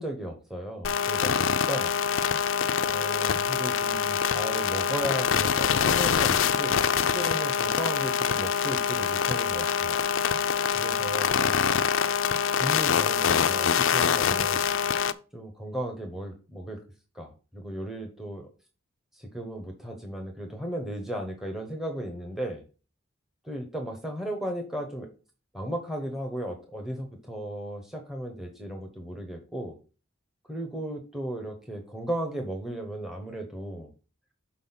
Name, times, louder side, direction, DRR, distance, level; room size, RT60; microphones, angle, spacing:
voice 1, 0.0-2.0 2.7-10.0 10.7-11.9 12.6-14.7 15.3-16.8 17.1-18.5 19.1-22.6 23.4-25.1 25.5-29.8 30.5-33.9, right 1 dB, ahead, 3 dB, 1.0 m, -35 dB
sound 1, 0.8-15.1, left 7 dB, 70° left, 0.5 m, -25 dB
6.2 x 4.5 x 5.7 m, 0.35 s
head